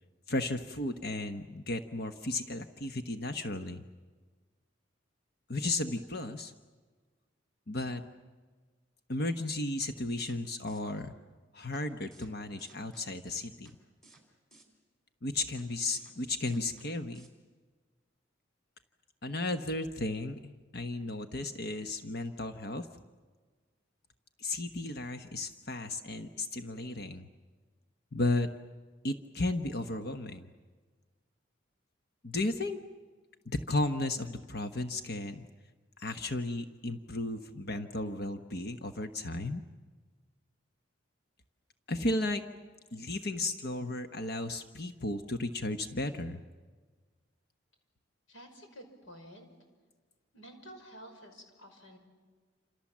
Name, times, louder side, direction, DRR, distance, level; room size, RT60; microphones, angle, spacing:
voice 1, 0.3-3.8 5.5-6.5 7.7-8.0 9.1-11.1 11.5-13.7 15.2-17.3 19.2-22.9 24.4-27.3 28.1-28.5 29.0-30.5 32.2-32.8 33.4-35.4 36.0-39.6 41.9-42.4 42.9-46.4, left 2 dB, 50° left, 7 dB, 1.1 m, -34 dB
sound 1, 9.8-9.9 10.2-10.4 10.7-10.8 11.7-11.8 12.1-12.3 12.6-13.0 13.3-13.7 14.0-14.2 14.5-14.7 15.6-15.7 15.9-16.1 16.4-16.9 17.1-17.3, right 2 dB, ahead, 4.2 m, -58 dB
voice 2, 48.3-49.5 50.3-52.0, equal, 75° left, 4 dB, 5.7 m, -51 dB
28.5 x 27.5 x 7.4 m, 1.4 s
head